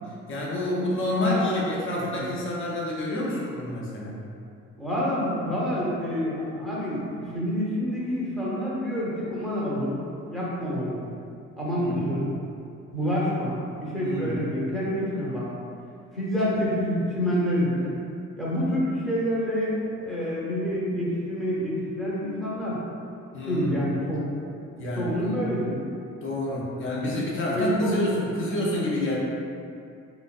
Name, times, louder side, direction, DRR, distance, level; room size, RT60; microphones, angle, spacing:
voice 1, 0.0-4.2 11.7-12.1 14.0-14.4 23.3-23.7 24.8-25.4 26.2-29.2, left 1 dB, 45° left, -4 dB, 0.6 m, -28 dB
voice 2, 1.2-1.6 1.9-2.3 4.8-10.0 10.3-11.0 11.6-12.3 12.9-15.5 16.1-18.0 18.4-19.8 20.0-22.8 23.5-24.2 25.0-25.8 27.5-28.0, equal, ahead, -8 dB, 0.7 m, -27 dB
2.5 x 2.1 x 2.3 m, 2.5 s
cardioid pair, 90°, 30 cm